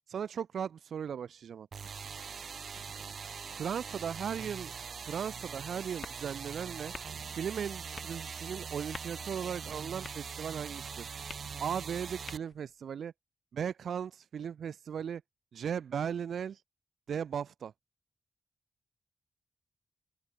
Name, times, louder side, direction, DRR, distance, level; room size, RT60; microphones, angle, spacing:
voice 1, 0.1-1.7 3.5-4.7 5.0-6.9 7.3-11.1 11.6-13.1 13.5-15.2 15.5-16.6 17.1-17.7, right 8 dB, 85° right, 1.3 m, -37 dB
sound 1, 1.7-12.4, right 6 dB, 65° right, 0.6 m, -42 dB
sound 2, 6.7-12.8, left 5 dB, 55° left, 5.8 m, -53 dB
open air
wide cardioid pair, 90°, 0 cm